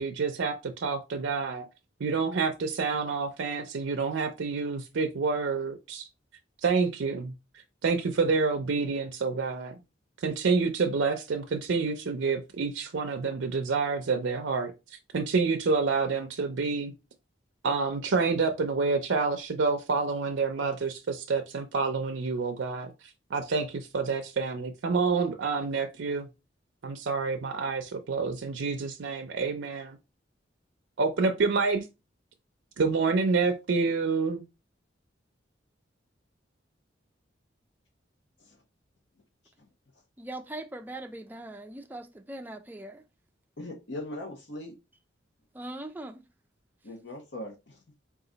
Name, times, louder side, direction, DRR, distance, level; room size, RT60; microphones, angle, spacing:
voice 1, 0.0-1.7 2.0-6.1 6.6-7.3 7.8-9.8 10.2-14.7 15.1-16.9 17.6-22.9 23.3-26.3 26.8-30.0 31.0-31.8 32.8-34.4, right 4 dB, 75° right, 0.5 m, -28 dB
voice 2, 40.2-43.0 45.5-46.2, right 1 dB, 10° right, 0.4 m, -40 dB
voice 3, 43.6-44.7 46.8-47.8, left 1 dB, 65° left, 1.0 m, -39 dB
3.9 x 2.4 x 3.8 m
head